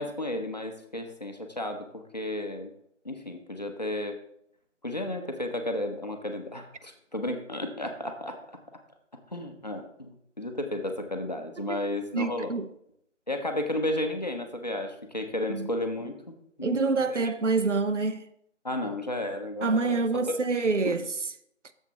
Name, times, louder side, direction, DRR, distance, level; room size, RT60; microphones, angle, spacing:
voice 1, 0.0-2.7 3.0-4.2 4.8-8.4 9.3-12.5 13.3-17.2 18.6-20.0 20.9-21.0, left 1 dB, 35° left, 0.8 m, -33 dB
voice 2, 12.1-12.7 15.5-15.7 16.6-18.3 19.6-21.1, right 3 dB, 65° right, 0.7 m, -26 dB
11.5 x 7.3 x 2.9 m
figure-of-eight pair, 170°, 39 cm